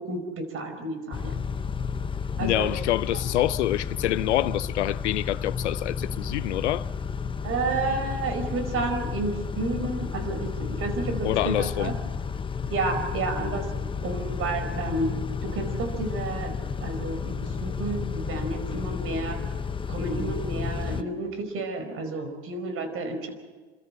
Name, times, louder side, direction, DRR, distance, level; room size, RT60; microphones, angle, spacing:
voice 1, 0.0-1.3 2.4-2.7 7.4-10.5 10.8-11.9 12.7-13.6 14.0-15.2 15.5-16.5 16.8-19.4 19.9-23.3, right 3 dB, 40° right, 4.9 m, -30 dB
Car / Idling / Accelerating revving vroom, 1.1-21.0, left 6 dB, 15° left, 0.8 m, -32 dB
voice 2, 2.4-6.9 11.2-11.9, left 14 dB, 85° left, 0.7 m, -26 dB
29.5 x 13.5 x 7.6 m
hypercardioid pair, 100°, 34 cm